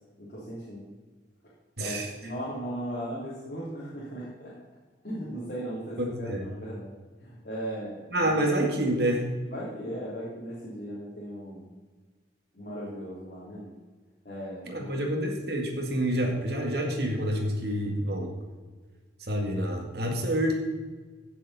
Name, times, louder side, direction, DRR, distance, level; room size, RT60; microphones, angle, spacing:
voice 1, 0.2-0.9 1.8-4.5 5.0-6.9 7.2-8.4 9.5-11.6 12.5-13.7 14.3-15.0, equal, 50° left, -8 dB, 3.5 m, -37 dB
voice 2, 1.8-2.1 6.0-6.5 8.1-9.3 14.7-18.3 19.3-20.6, right 1 dB, 60° right, 1 dB, 2.1 m, -28 dB
16.0 x 7.2 x 4.3 m, 1.4 s
head